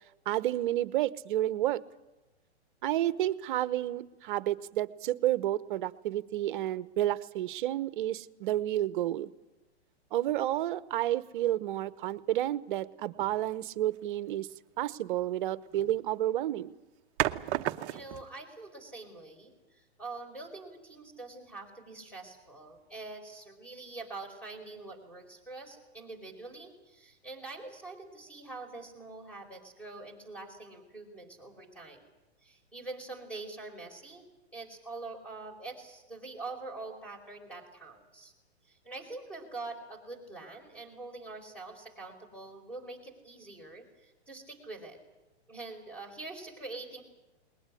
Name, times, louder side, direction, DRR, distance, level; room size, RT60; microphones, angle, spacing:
voice 1, 0.3-1.8 2.8-9.3 10.1-14.5 14.8-16.8, right 13 dB, 50° right, 16 dB, 1.0 m, -30 dB
sound 1, 13.2-13.5 15.7-16.0 17.2-18.3, right 14 dB, 30° right, 0.8 m, -33 dB
voice 2, 17.9-32.0 32.4-34.2 34.5-38.3 38.6-45.0 45.5-47.0, right 3 dB, 5° left, 6 dB, 4.8 m, -44 dB
20.5 x 20.0 x 9.8 m, 1.1 s
hypercardioid pair, 135°, 33 cm